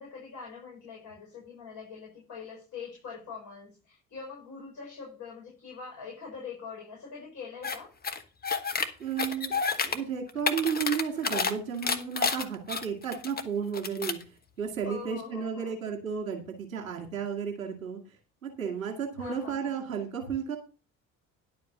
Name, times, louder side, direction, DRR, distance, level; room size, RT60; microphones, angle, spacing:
voice 1, 0.0-7.9 14.8-15.8 19.2-19.8, left 5 dB, 45° left, -3 dB, 6.1 m, -43 dB
sound 1, 7.6-7.8 8.0-8.9 9.2-10.0 10.3-11.5 11.8-13.4 13.7-14.2, left 5 dB, 25° left, 1.2 m, -29 dB
voice 2, 9.0-9.5 9.8-18.0 18.4-20.6, right 7 dB, 75° right, 2 dB, 2.1 m, -33 dB
10.5 x 5.2 x 6.8 m, 0.34 s
figure-of-eight pair, 50°, 40 cm